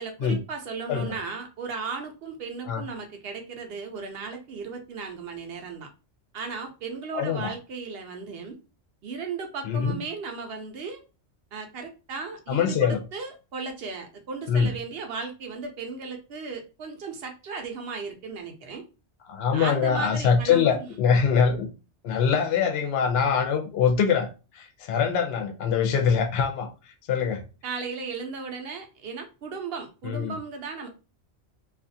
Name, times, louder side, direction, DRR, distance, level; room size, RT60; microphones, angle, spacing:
voice 1, 0.0-5.9 6.3-8.6 9.0-11.0 11.5-18.8 19.5-20.9 22.0-22.1 27.6-30.9, right 4 dB, 65° right, 0.8 m, -36 dB
voice 2, 7.1-7.5 9.7-10.0 12.5-13.0 14.5-14.7 19.3-21.7 22.0-24.3 24.5-26.7 27.1-27.4 30.0-30.3, left 6 dB, 65° left, 0.8 m, -23 dB
2.4 x 2.4 x 2.6 m
omnidirectional pair, 1.2 m